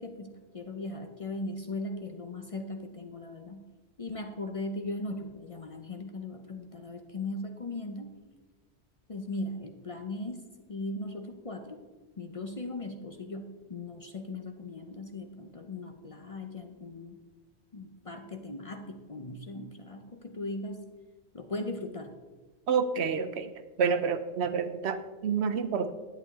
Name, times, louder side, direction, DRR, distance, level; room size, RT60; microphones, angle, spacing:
voice 1, 0.0-3.7 4.0-8.2 9.1-11.8 12.2-17.2 17.7-20.9 21.3-22.1, left 2 dB, 40° left, 5 dB, 0.6 m, -38 dB
voice 2, 22.7-23.5 23.8-25.9, right 6 dB, 75° right, 10 dB, 1.0 m, -28 dB
11.0 x 9.1 x 3.5 m, 1.3 s
omnidirectional pair, 1.1 m